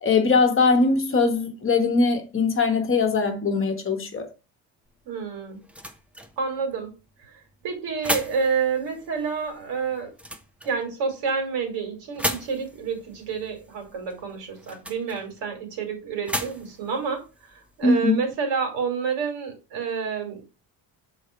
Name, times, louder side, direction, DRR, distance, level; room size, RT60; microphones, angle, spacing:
voice 1, 0.0-4.3 17.8-18.2, left 4 dB, 30° left, 1.1 m, -21 dB
sound 1, 4.8-18.3, equal, 5° right, 0.5 m, -37 dB
voice 2, 5.0-5.6 6.4-6.9 7.2-10.1 10.6-20.4, right 5 dB, 80° right, 2.7 m, -29 dB
6.4 x 4.1 x 4.4 m
cardioid pair, 140°, 42 cm